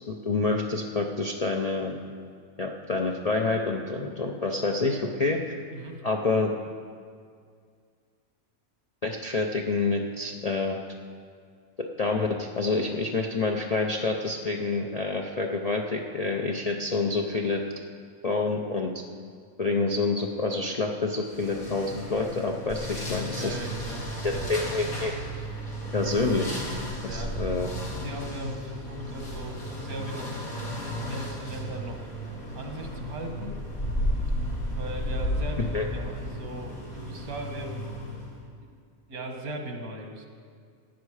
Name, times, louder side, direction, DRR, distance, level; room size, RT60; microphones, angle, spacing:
voice 1, 0.1-2.0 2.6-5.6 6.0-6.5 9.0-10.8 11.8-17.6 18.2-18.9 19.6-23.6 24.2-25.1 25.9-26.6 27.1-27.7 35.7-35.8, left 3 dB, 50° left, 1 dB, 0.4 m, -27 dB
sound 1, 21.3-38.4, equal, 85° left, 2.7 m, -34 dB
voice 2, 23.4-24.6 26.9-27.4 27.6-32.1 32.5-33.6 34.7-37.9 39.1-40.2, right 1 dB, 85° right, 3 dB, 1.9 m, -38 dB
15.0 x 9.3 x 4.9 m, 2.2 s
omnidirectional pair, 1.5 m